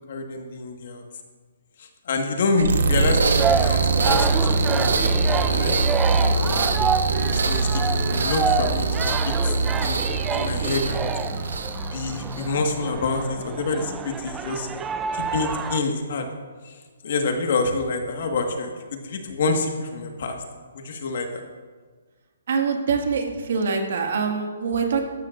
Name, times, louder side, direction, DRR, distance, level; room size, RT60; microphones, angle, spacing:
voice 1, 0.1-1.0 1.8-4.5 4.7-6.4 7.3-9.5 9.8-11.1 11.9-14.9 15.1-16.3 16.6-16.8 17.0-20.4 20.7-21.4, left 3 dB, 55° left, 4 dB, 1.5 m, -27 dB
sound 1, 2.6-12.6, right 3 dB, 85° right, 1.1 m, -23 dB
sound 2, 3.4-15.8, right 6 dB, 10° right, 0.4 m, -28 dB
voice 2, 22.5-25.0, right 5 dB, 60° right, 3 dB, 1.8 m, -24 dB
13.0 x 12.5 x 2.5 m, 1.5 s
hypercardioid pair, 165°, 0 cm